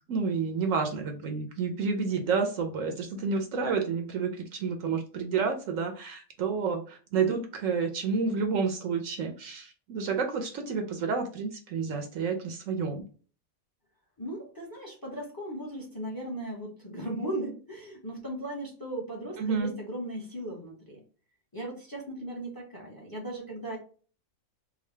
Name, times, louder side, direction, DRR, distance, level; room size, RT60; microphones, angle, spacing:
voice 1, 0.1-13.0 19.4-19.7, right 5 dB, 70° right, 5 dB, 1.0 m, -30 dB
voice 2, 14.2-21.0 21.5-23.8, right 1 dB, 15° left, -1 dB, 0.9 m, -37 dB
3.7 x 2.3 x 3.2 m, 0.39 s
omnidirectional pair, 1.5 m